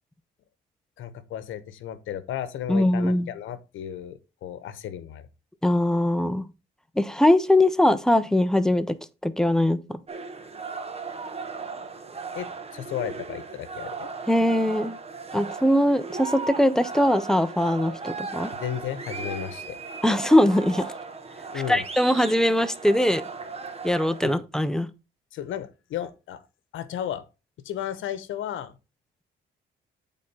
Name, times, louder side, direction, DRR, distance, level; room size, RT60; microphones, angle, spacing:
voice 1, 1.0-5.3 12.3-14.1 18.6-19.8 21.5-21.8 24.2-24.4 25.3-26.4 26.7-27.2 27.6-28.8, left 10 dB, 80° left, 1.1 m, -34 dB
voice 2, 2.7-3.3 5.6-6.4 7.0-9.0 9.2-10.0 14.3-15.0 15.3-18.5 20.0-20.9 21.7-23.2 23.8-24.9, left 1 dB, 5° left, 0.8 m, -21 dB
sound 1, 10.1-24.3, right 4 dB, 30° right, 1.3 m, -36 dB
8.4 x 3.8 x 5.6 m
cardioid pair, 90°, 20 cm